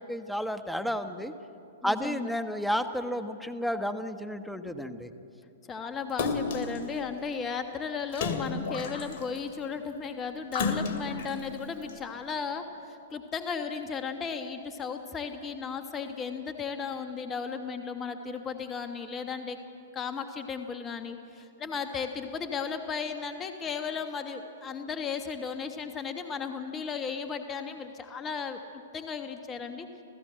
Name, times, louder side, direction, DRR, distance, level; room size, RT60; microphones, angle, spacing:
voice 1, 0.0-1.3 1.8-5.1, equal, ahead, 9 dB, 1.2 m, -32 dB
voice 2, 1.8-2.3 5.7-19.6 19.9-28.6 28.9-29.9, left 6 dB, 20° left, 7 dB, 1.5 m, -35 dB
Splash splatter, 6.2-6.8 8.1-9.4 10.5-11.3 11.9-12.0, left 4 dB, 55° left, 2.3 m, -31 dB
28.5 x 15.5 x 7.7 m, 2.7 s
hypercardioid pair, 120°, 0 cm